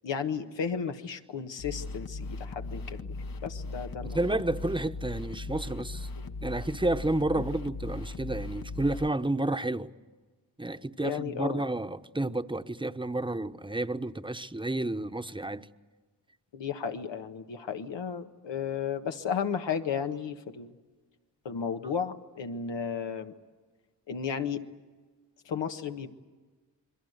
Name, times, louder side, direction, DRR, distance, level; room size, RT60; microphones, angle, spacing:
voice 1, 0.0-3.1 3.4-4.4 6.2-6.3 7.3-7.4 11.0-11.6 16.5-20.7 21.4-23.3 24.1-24.6 25.4-26.1, left 7 dB, 90° left, 1.5 m, -34 dB
sound 1, 1.6-9.1, left 3 dB, 50° left, 1.2 m, -38 dB
voice 2, 4.0-6.1 6.4-9.9 10.6-15.7, right 2 dB, 10° right, 1.1 m, -31 dB
28.0 x 22.5 x 8.1 m
cardioid pair, 50°, 43 cm